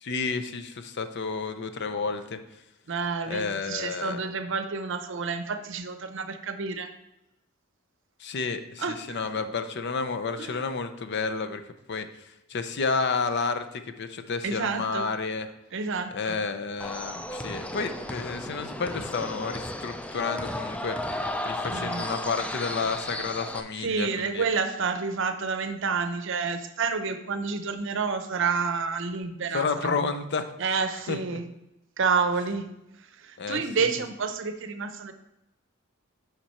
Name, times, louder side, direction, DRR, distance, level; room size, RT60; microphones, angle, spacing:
voice 1, 0.0-2.4 3.3-4.2 8.2-11.6 11.9-12.1 12.5-15.5 16.1-21.0 21.5-24.5 29.5-30.4 31.1-31.4 33.4-33.6, left 4 dB, 55° left, 9 dB, 0.5 m, -31 dB
voice 2, 2.9-6.9 8.8-9.2 10.4-10.6 14.4-15.1 15.7-16.4 21.7-22.1 23.8-30.1 30.6-31.4 32.0-32.7 33.0-35.1, right 5 dB, 60° right, 9 dB, 0.7 m, -29 dB
sound 1, 16.8-23.6, left 1 dB, 5° left, 0.3 m, -34 dB
7.4 x 5.1 x 4.3 m, 0.89 s
head